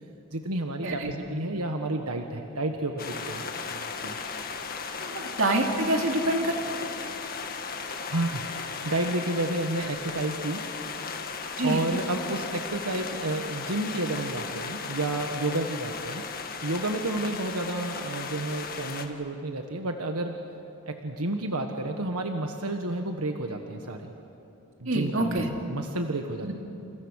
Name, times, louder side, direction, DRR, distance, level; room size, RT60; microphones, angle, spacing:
voice 1, 0.3-3.5 3.8-4.2 8.1-10.7 11.0-11.2 11.6-16.3 16.6-20.4 20.9-24.1 24.8-25.4 25.7-26.5, right 2 dB, 85° right, 4 dB, 1.5 m, -31 dB
sound 1, 3.0-19.1, left 5 dB, 40° left, 1.8 m, -36 dB
voice 2, 5.0-6.6 11.6-11.8 24.8-25.5 26.4-26.5, right 1 dB, 60° right, 2 dB, 2.9 m, -26 dB
30.0 x 29.0 x 6.5 m, 2.8 s
head